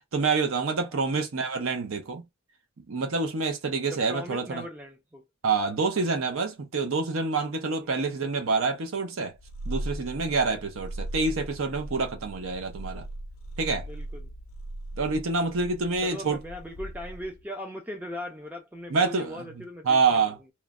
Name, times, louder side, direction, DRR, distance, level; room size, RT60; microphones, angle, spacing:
voice 1, 0.1-2.2 2.9-4.6 5.4-9.3 9.7-13.0 13.6-13.9 15.0-16.4 18.9-19.4 19.9-20.4, right 4 dB, 65° right, 0.6 m, -27 dB
voice 2, 3.9-5.2 10.3-10.4 13.9-14.3 15.8-20.3, left 1 dB, 10° right, 0.4 m, -39 dB
Purr, 9.4-17.4, right 1 dB, 65° left, 0.5 m, -39 dB
3.1 x 2.1 x 2.3 m
head